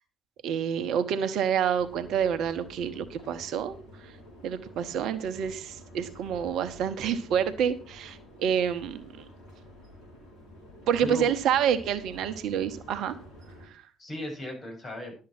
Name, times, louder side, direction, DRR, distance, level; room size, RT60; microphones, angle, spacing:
voice 1, 0.4-3.8 4.0-4.1 4.4-9.2 10.9-13.1 13.7-13.8, right 8 dB, 60° right, 11 dB, 1.0 m, -28 dB
sound 1, 1.7-13.7, left 1 dB, 65° left, 5.9 m, -49 dB
voice 2, 4.7-5.2 11.0-11.3 14.0-15.1, left 1 dB, 40° left, 2 dB, 7.4 m, -37 dB
12.0 x 7.7 x 6.0 m, 0.36 s
figure-of-eight pair, 50°, 0 cm